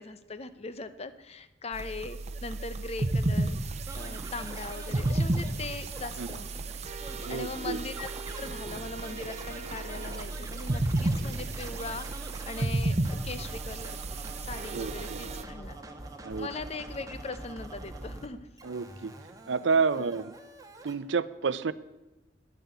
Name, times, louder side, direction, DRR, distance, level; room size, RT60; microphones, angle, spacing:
voice 1, 0.0-3.6 4.0-6.5 7.3-14.0 14.3-15.8 16.4-18.4 20.0-20.1, left 3 dB, 35° left, 12 dB, 0.7 m, -40 dB
sound 1, 1.7-15.4, right 2 dB, 35° right, 0.8 m, -33 dB
Scratching (performance technique), 3.9-12.7 13.0-18.3 18.6-20.9, right 1 dB, 20° right, 1.2 m, -45 dB
voice 2, 7.2-7.8 14.7-15.2 16.2-16.5 18.6-19.1 19.5-20.3 20.8-21.7, right 5 dB, 80° right, 16 dB, 0.6 m, -29 dB
10.5 x 10.5 x 8.1 m, 1.0 s
head